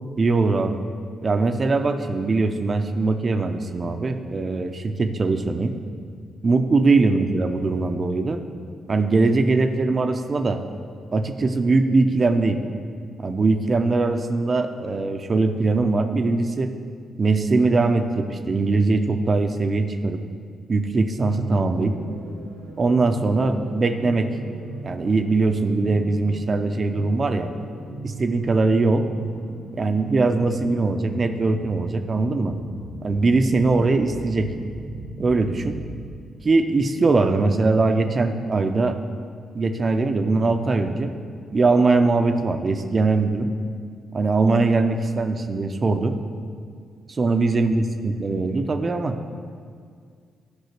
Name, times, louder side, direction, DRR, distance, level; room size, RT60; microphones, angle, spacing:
voice 1, 0.2-0.8 1.2-5.8 6.4-8.4 8.9-10.6 11.1-12.6 13.2-16.7 17.2-20.2 20.7-22.0 22.8-24.3 24.8-27.5 28.0-29.1 29.7-32.5 33.0-34.5 35.2-35.8 36.4-39.0 39.5-41.1 41.5-43.5 44.1-46.2 47.1-49.2, right 3 dB, 45° right, 7 dB, 0.8 m, -21 dB
sound 1, 21.3-36.3, right 1 dB, 90° right, 1.3 m, -39 dB
12.0 x 5.4 x 6.0 m, 2.1 s
hypercardioid pair, 40°, 0 cm